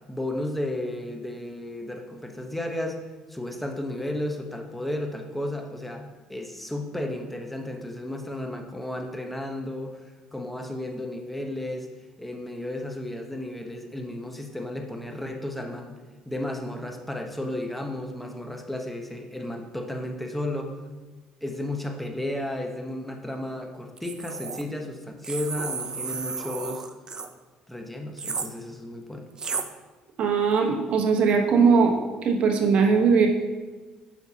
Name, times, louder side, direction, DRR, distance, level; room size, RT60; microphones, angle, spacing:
voice 1, 0.1-3.0 3.3-11.9 12.2-16.0 16.2-20.8 21.4-26.9 27.7-29.3, left 1 dB, 5° left, 4 dB, 1.0 m, -33 dB
sound 1, 24.0-24.6 25.2-27.3 28.2-28.5 29.4-29.7, right 5 dB, 30° right, 0.6 m, -33 dB
voice 2, 30.2-32.0 32.2-33.3, right 5 dB, 60° right, 3 dB, 1.2 m, -20 dB
8.9 x 6.4 x 2.8 m, 1.3 s
supercardioid pair, 85°, 2 cm